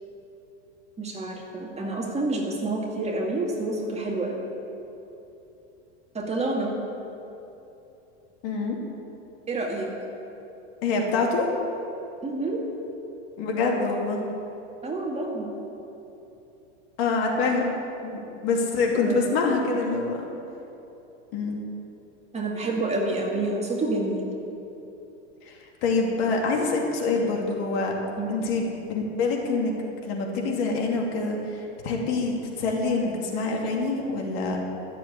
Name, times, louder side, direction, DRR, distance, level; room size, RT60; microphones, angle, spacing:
voice 1, 1.0-4.4 6.1-6.8 9.5-9.9 12.2-12.6 14.8-15.5 18.9-19.2 22.3-24.3 28.2-28.4, right 2 dB, 20° right, -1 dB, 2.2 m, -28 dB
voice 2, 8.4-8.8 10.8-11.5 13.4-14.2 17.0-17.7 18.0-20.3 21.3-21.6 25.4-27.9 28.3-29.7 30.0-34.6, left 3 dB, 60° left, 0 dB, 2.7 m, -26 dB
13.0 x 7.5 x 8.3 m, 3.0 s
supercardioid pair, 115°, 35 cm